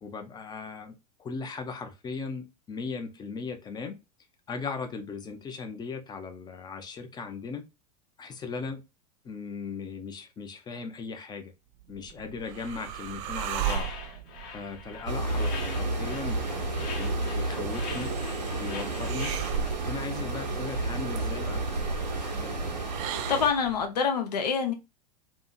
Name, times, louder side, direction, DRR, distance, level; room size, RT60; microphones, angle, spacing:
voice 1, 0.0-4.0 4.5-7.7 8.2-8.8 9.2-11.5 11.9-13.9 14.5-18.1 18.5-19.3 19.9-22.7, left 4 dB, 20° left, 0.5 m, -38 dB
sound 1, 11.8-23.9, right 9 dB, 50° right, 0.4 m, -38 dB
sound 2, 13.6-19.7, left 5 dB, 40° left, 0.9 m, -43 dB
sound 3, 15.1-23.5, right 2 dB, 90° right, 0.9 m, -31 dB
voice 2, 23.3-24.7, left 6 dB, 75° left, 0.7 m, -26 dB
2.7 x 2.5 x 2.3 m
figure-of-eight pair, 90°, 21 cm